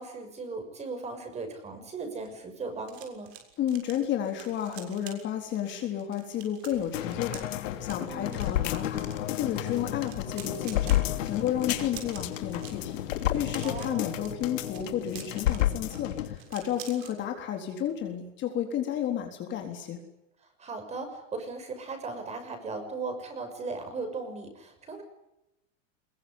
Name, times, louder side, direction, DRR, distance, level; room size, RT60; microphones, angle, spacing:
voice 1, 0.0-3.3 8.1-8.5 13.6-14.2 20.6-25.0, right 3 dB, 15° right, 7 dB, 6.2 m, -37 dB
sound 1, 1.9-17.1 17.5-17.7 18.0-18.3, right 10 dB, 55° right, 6.9 m, -49 dB
voice 2, 3.6-11.0 11.3-13.0 13.3-20.0, left 10 dB, 30° left, 4 dB, 3.8 m, -32 dB
sound 2, 6.7-13.4, left 14 dB, 55° left, 3.8 m, -43 dB
sound 3, 6.9-16.4 16.7-16.8, left 13 dB, 85° left, 2.9 m, -31 dB
24.0 x 22.5 x 9.8 m, 0.88 s
supercardioid pair, 165°, 38 cm